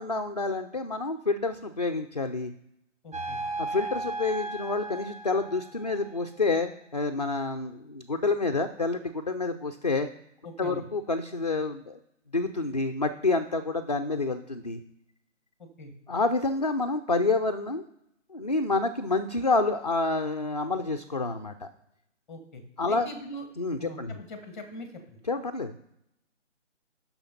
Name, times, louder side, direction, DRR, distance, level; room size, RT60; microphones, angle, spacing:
voice 1, 0.0-2.5 3.6-10.1 10.6-12.0 12.3-14.8 16.1-17.8 18.3-21.7 22.8-23.1 23.6-24.2 25.3-25.7, left 3 dB, 35° left, 5 dB, 0.4 m, -28 dB
voice 2, 3.0-3.4 10.4-10.8 15.6-15.9 22.3-22.6 22.9-23.4 23.8-25.2, equal, ahead, 6 dB, 1.0 m, -42 dB
sound 1, 3.1-6.3, right 2 dB, 30° right, 1.4 m, -36 dB
6.6 x 5.8 x 5.6 m, 0.81 s
figure-of-eight pair, 150°, 37 cm